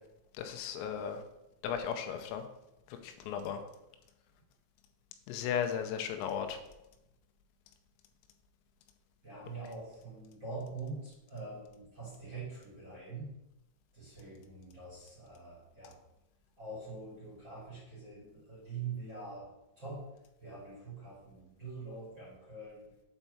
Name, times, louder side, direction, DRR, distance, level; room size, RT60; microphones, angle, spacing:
voice 1, 0.4-1.2 1.6-2.5 2.9-3.6 5.3-6.6, left 8 dB, 90° left, 6 dB, 3.4 m, -35 dB
voice 2, 9.2-13.3 13.9-16.0 16.6-20.1 20.4-22.9, right 3 dB, 30° right, -6 dB, 2.2 m, -44 dB
8.1 x 4.6 x 5.6 m, 0.90 s
omnidirectional pair, 5.9 m